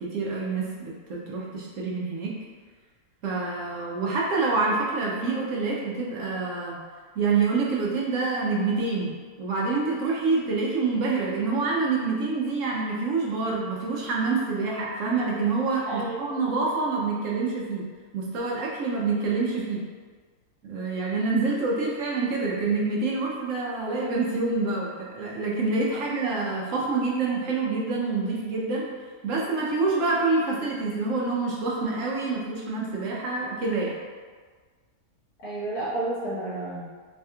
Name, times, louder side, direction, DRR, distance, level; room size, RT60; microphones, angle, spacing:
voice 1, 0.0-2.3 3.2-6.8 7.2-17.8 18.1-19.8 20.6-28.8 29.2-34.0, right 3 dB, 65° right, -4 dB, 0.9 m, -27 dB
voice 2, 15.9-16.2 25.9-26.0 35.4-36.9, right 2 dB, 80° left, -8 dB, 1.6 m, -31 dB
4.1 x 2.8 x 2.3 m, 1.5 s
omnidirectional pair, 1.6 m